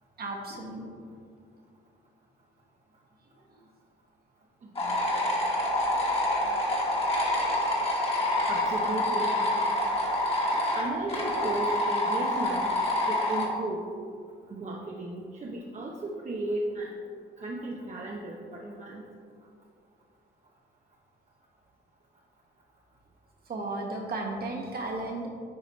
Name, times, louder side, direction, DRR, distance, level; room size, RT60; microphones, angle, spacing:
voice 1, 0.2-0.9 23.5-25.3, right 2 dB, 50° right, -1 dB, 1.4 m, -34 dB
voice 2, 4.6-5.1 8.5-9.4 10.7-12.7 13.1-13.9 14.5-16.9 17.4-19.1, right 2 dB, 35° right, -2 dB, 0.7 m, -35 dB
sound 1, 4.8-13.5, left 1 dB, 30° left, 1.6 m, -27 dB
9.3 x 4.8 x 3.1 m, 2.3 s
cardioid pair, 90°, 20 cm